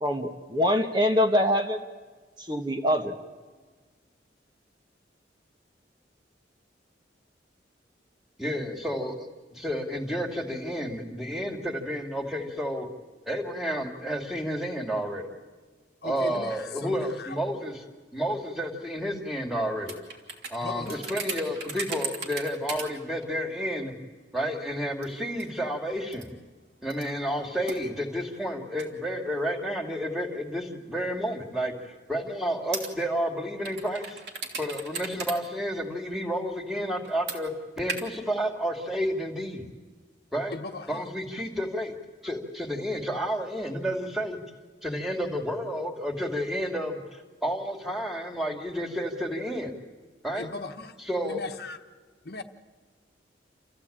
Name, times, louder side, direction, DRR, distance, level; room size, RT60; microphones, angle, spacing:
voice 1, 0.0-1.8 2.4-3.2, equal, 25° right, 1.2 m, -24 dB
voice 2, 8.4-12.9 13.3-15.3 16.0-17.8 18.1-20.0 20.5-23.9 24.3-26.3 26.8-34.2 34.6-39.7 40.3-40.6 40.9-41.9 42.2-44.4 44.8-49.7 50.2-50.5 51.0-51.4, equal, ahead, 2.5 m, -31 dB
voice 3, 16.0-17.3 20.6-21.1 40.5-41.0 50.4-50.9 51.3-51.8 52.2-52.4, left 3 dB, 60° left, 1.2 m, -38 dB
sound 1, 19.9-22.9 23.2-23.3 23.9-24.0 25.0-25.6 26.1-26.3 26.9-28.9 29.3-29.4 30.1-30.4 31.3-31.5 32.7-32.9 33.7-35.4 35.6-35.8 37.0-37.4 37.9-38.0, right 4 dB, 65° right, 3.0 m, -37 dB
28.0 x 15.0 x 8.7 m
head